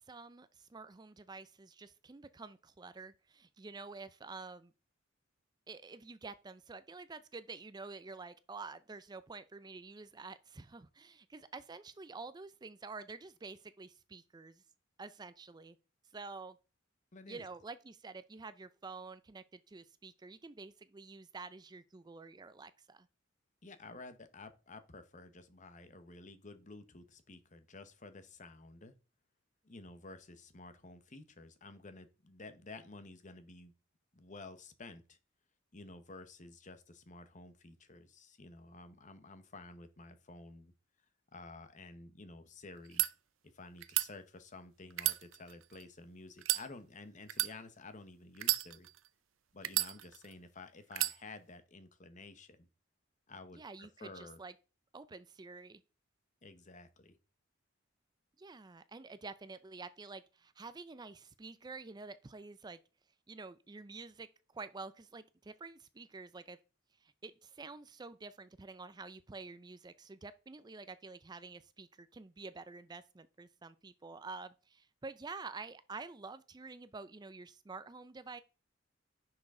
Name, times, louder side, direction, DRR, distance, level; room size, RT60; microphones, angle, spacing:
voice 1, 0.1-4.7 5.7-14.6 15.0-15.8 16.1-16.6 17.3-23.1 53.5-54.5 54.9-55.8 58.4-62.8 63.3-64.3 64.5-66.6 67.0-78.4, right 4 dB, 20° right, 0.4 m, -49 dB
voice 2, 17.1-17.4 23.6-28.9 29.6-33.7 34.1-35.2 35.7-40.7 41.3-43.0 43.5-48.9 49.5-52.7 53.3-54.4 56.4-57.2, left 3 dB, 40° left, 1.0 m, -52 dB
sound 1, 42.8-43.1 43.8-44.1 44.9-45.8 46.4-46.7 47.3-47.5 48.4-49.1 49.6-50.3 50.9-51.2, right 16 dB, 90° right, 0.6 m, -32 dB
10.0 x 6.0 x 3.7 m
head